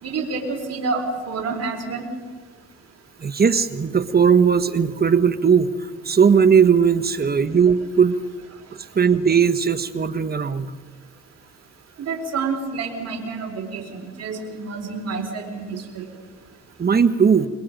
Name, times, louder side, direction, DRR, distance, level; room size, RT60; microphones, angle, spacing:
voice 1, 0.0-2.1 12.0-16.1, right 4 dB, 55° right, 2 dB, 4.0 m, -28 dB
voice 2, 3.2-5.7 6.0-8.2 8.9-10.7 16.8-17.5, right 6 dB, 30° right, 11 dB, 1.3 m, -18 dB
26.5 x 22.5 x 5.2 m, 1.4 s
cardioid pair, 90°, 30 cm